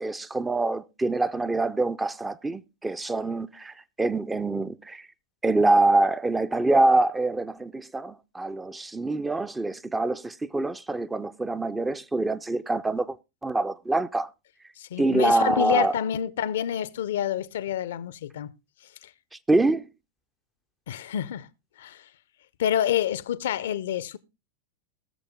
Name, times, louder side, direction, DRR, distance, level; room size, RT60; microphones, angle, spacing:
voice 1, 0.0-5.1 5.4-13.2 13.4-14.3 15.0-15.9 19.5-19.9, right 2 dB, 10° right, 0.5 m, -25 dB
voice 2, 14.8-18.5 19.0-19.1 20.9-21.5 21.8-22.0 22.6-24.2, left 10 dB, 60° left, 0.6 m, -28 dB
19.5 x 6.8 x 3.5 m
figure-of-eight pair, 90°, 0 cm